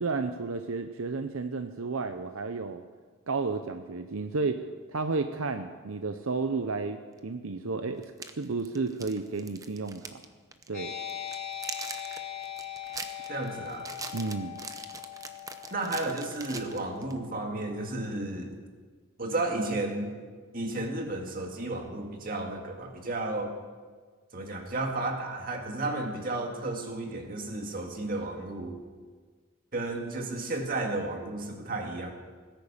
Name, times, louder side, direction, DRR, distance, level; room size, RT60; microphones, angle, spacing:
voice 1, 0.0-2.8 3.3-8.0 8.3-10.2 10.7-10.9 14.1-14.6, right 4 dB, 75° right, 8 dB, 0.7 m, -32 dB
sound 1, 7.2-7.3 8.0-10.2 10.5-10.7 11.1-17.2, right 4 dB, 15° right, 0.7 m, -42 dB
sound 2, 10.7-17.8, left 10 dB, 35° left, 3.3 m, -41 dB
voice 2, 13.3-13.9 15.7-18.6 19.2-20.1 20.5-23.5 24.3-28.8 29.7-32.1, right 2 dB, 40° right, 3 dB, 2.1 m, -33 dB
18.5 x 10.5 x 7.2 m, 1.5 s
head